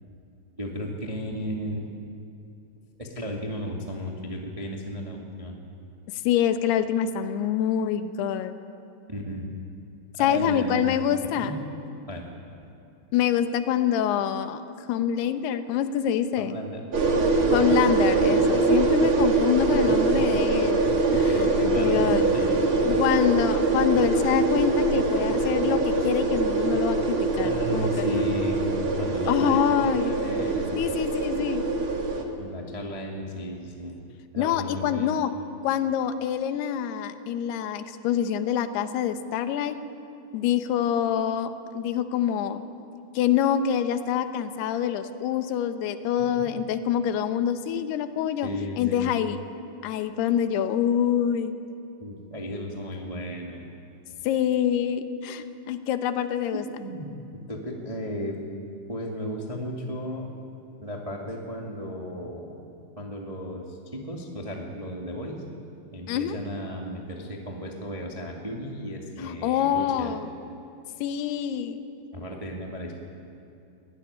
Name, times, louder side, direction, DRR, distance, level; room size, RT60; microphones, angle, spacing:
voice 1, 0.6-1.9 3.0-5.6 9.1-9.5 10.2-10.8 11.4-11.5 12.1-12.3 16.4-16.8 21.2-22.9 27.4-28.7 29.0-31.0 32.4-34.0 34.3-35.2 46.2-46.3 48.4-49.1 52.0-53.6 56.5-57.1 57.5-58.4 58.9-60.3 60.8-62.6 63.0-65.4 65.9-70.1 72.1-72.9, equal, 30° right, -1 dB, 0.6 m, -34 dB
voice 2, 6.3-8.5 10.2-11.5 13.1-14.6 14.9-16.6 17.5-20.8 21.1-22.3 22.8-28.3 29.3-30.1 30.8-31.6 34.4-35.3 35.6-39.8 40.3-42.6 43.1-48.5 48.8-49.4 49.8-51.6 54.2-56.6 66.1-66.4 69.2-70.3 71.0-71.8, left 9 dB, 75° left, 9 dB, 2.8 m, -26 dB
sound 1, 16.9-32.2, right 3 dB, 45° right, 1.7 m, -23 dB
24.0 x 17.0 x 9.9 m, 2.7 s
omnidirectional pair, 5.3 m